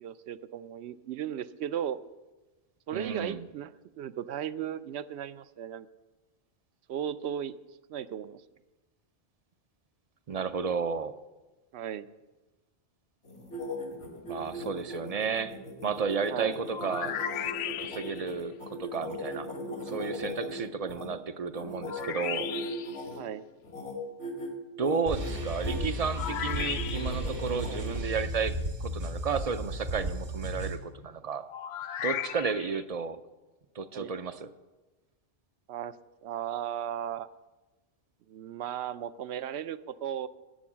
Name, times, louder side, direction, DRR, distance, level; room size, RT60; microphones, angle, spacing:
voice 1, 0.0-2.0 2.9-5.9 6.9-7.5 7.9-8.4 11.7-12.1 16.3-16.7 23.2-23.4 27.7-27.9 33.9-34.1 35.7-35.9 36.2-37.3 38.3-40.3, right 9 dB, 70° right, 14 dB, 0.8 m, -36 dB
voice 2, 2.9-3.4 10.3-11.2 14.3-15.5 15.8-17.1 17.8-19.5 19.8-22.5 24.8-28.5 28.8-31.4 32.0-33.2 33.7-34.5, right 5 dB, 50° right, 11 dB, 0.4 m, -32 dB
sound 1, 13.3-21.1 21.5-23.2 23.6-23.9 24.2-24.5 24.8-25.8 26.2-28.0, left 1 dB, 85° left, 2.5 m, -39 dB
sound 2, 16.7-18.3 21.8-23.0 26.1-27.4 31.5-32.8, left 10 dB, 70° left, 0.8 m, -36 dB
sound 3, 25.1-30.8, equal, 90° right, 2.3 m, -34 dB
11.5 x 7.8 x 7.4 m, 1.1 s
omnidirectional pair, 1.2 m